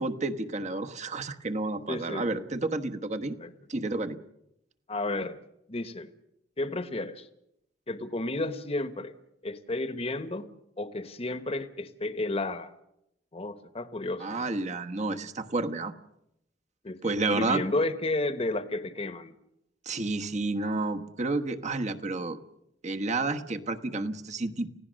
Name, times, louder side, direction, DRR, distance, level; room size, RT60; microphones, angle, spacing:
voice 1, 0.0-3.3 3.7-4.2 14.2-15.9 17.0-17.6 19.8-22.4 22.8-24.7, right 2 dB, 40° right, 7 dB, 1.2 m, -30 dB
voice 2, 1.9-2.5 3.4-3.5 4.9-5.4 5.7-6.1 6.6-7.3 7.9-9.1 9.4-10.5 10.8-12.7 13.3-14.4 16.8-19.3, left 2 dB, 35° left, 11 dB, 1.1 m, -32 dB
29.0 x 16.5 x 6.4 m, 0.81 s
head